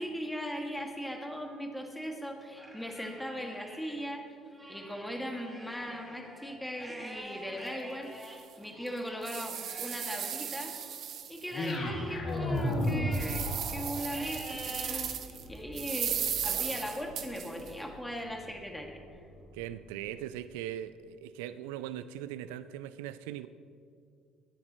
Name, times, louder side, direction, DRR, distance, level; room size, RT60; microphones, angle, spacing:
voice 1, 0.0-4.3 4.7-10.8 11.3-19.0, equal, 5° left, 1 dB, 2.2 m, -39 dB
Livestock farm animals working animals, 2.4-4.0 4.4-11.0 11.5-13.6 14.1-15.0 15.5-16.0 16.5-17.6, right 1 dB, 10° right, 3.0 m, -48 dB
sound 1, 7.6-7.7 8.2-8.3 8.9-11.7 12.1-12.2 12.7-15.4 15.8-17.7, right 9 dB, 60° right, 1.1 m, -36 dB
sound 2, 11.5-19.7, left 1 dB, 55° left, 3.2 m, -36 dB
voice 2, 19.5-23.5, right 11 dB, 85° right, 14 dB, 0.4 m, -40 dB
22.0 x 9.8 x 3.1 m, 2.3 s
hypercardioid pair, 65°, 0 cm